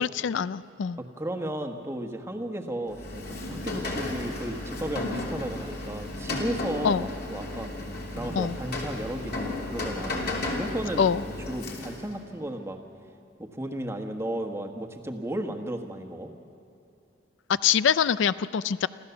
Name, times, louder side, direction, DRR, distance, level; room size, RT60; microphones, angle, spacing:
voice 1, 0.0-1.0 6.8-7.1 8.4-8.6 11.0-11.2 17.6-18.9, left 7 dB, 70° left, 16 dB, 0.4 m, -24 dB
voice 2, 1.0-7.7 8.1-11.0 11.5-12.8 13.4-16.3, right 1 dB, 15° right, 5 dB, 1.3 m, -34 dB
Rain, 2.9-12.2, left 2 dB, 55° left, 3.2 m, -34 dB
26.5 x 15.0 x 7.0 m, 2.8 s
head